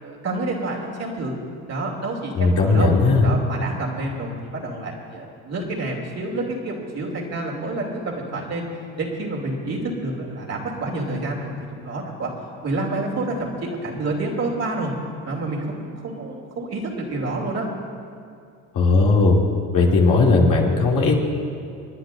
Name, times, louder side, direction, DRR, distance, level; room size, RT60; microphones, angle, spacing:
voice 1, 0.0-1.3 1.7-2.9 3.2-8.6 9.0-12.3 12.6-14.9 15.2-17.7, right 2 dB, 45° right, -1 dB, 2.9 m, -28 dB
voice 2, 2.4-3.3 18.7-19.4 19.7-21.1, left 3 dB, 55° left, -3 dB, 2.9 m, -17 dB
29.0 x 10.0 x 2.7 m, 2.4 s
supercardioid pair, 85°, 37 cm